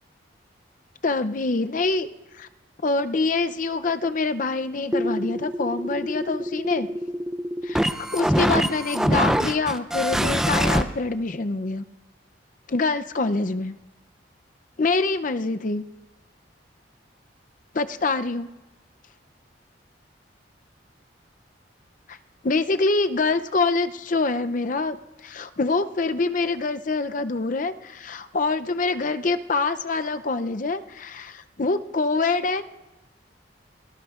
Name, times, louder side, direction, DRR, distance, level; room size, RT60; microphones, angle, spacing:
voice 1, 1.0-2.1 2.3-2.5 2.8-6.9 7.6-7.8 8.1-11.8 12.7-13.8 14.8-15.8 17.7-18.5 22.1-22.2 22.4-25.0 25.2-32.6, left 3 dB, 45° left, 10 dB, 0.5 m, -25 dB
sound 1, 4.9-10.8, equal, 5° right, 0.5 m, -24 dB
28.5 x 18.5 x 2.4 m, 1.1 s
head